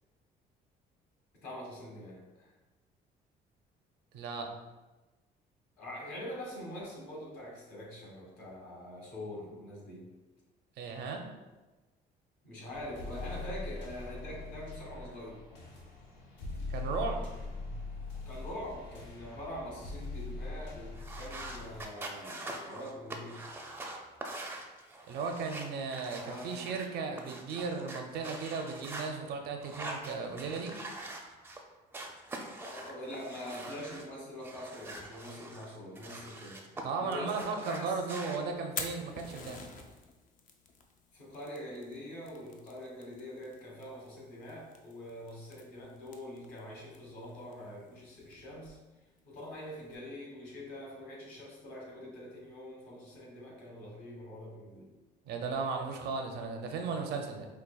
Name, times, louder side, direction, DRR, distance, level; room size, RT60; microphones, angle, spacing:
voice 1, 1.4-2.5 5.8-10.1 12.4-15.4 18.2-23.4 26.2-26.7 32.6-36.6 37.0-38.5 41.1-48.8 49.2-54.9, left 1 dB, 70° left, -4 dB, 1.5 m, -44 dB
voice 2, 4.1-4.5 10.8-11.2 16.7-17.3 25.1-30.8 36.8-39.6 55.3-57.5, right 4 dB, 70° right, 4 dB, 0.5 m, -36 dB
sound 1, 12.7-21.8, left 2 dB, 85° left, 0.7 m, -42 dB
sound 2, 21.0-29.1 29.6-31.6 31.9-34.1 34.4-36.8 37.1-38.4, right 2 dB, 15° right, 0.4 m, -44 dB
Fire, 38.5-49.9, left 5 dB, 50° left, 0.5 m, -49 dB
5.2 x 2.2 x 2.3 m, 1.2 s
cardioid pair, 110°, 17 cm